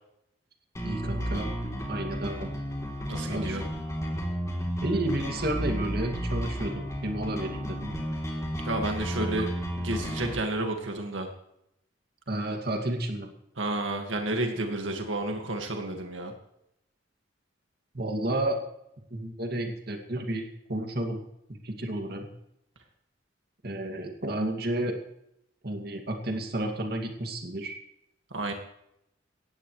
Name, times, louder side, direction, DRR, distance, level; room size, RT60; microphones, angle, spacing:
sound 1, 0.7-10.3, equal, 15° left, 3.3 m, -32 dB
voice 1, 0.8-1.5 1.9-2.5 3.3-3.6 4.8-7.9 12.3-13.3 17.9-18.6 19.1-21.2 21.6-22.3 23.6-25.0 25.6-27.7, right 1 dB, 55° right, 3 dB, 2.3 m, -31 dB
voice 2, 3.1-3.6 8.6-11.3 13.6-16.3 28.3-28.5, right 2 dB, 90° right, 3 dB, 2.0 m, -31 dB
18.5 x 15.0 x 3.2 m, 0.79 s
head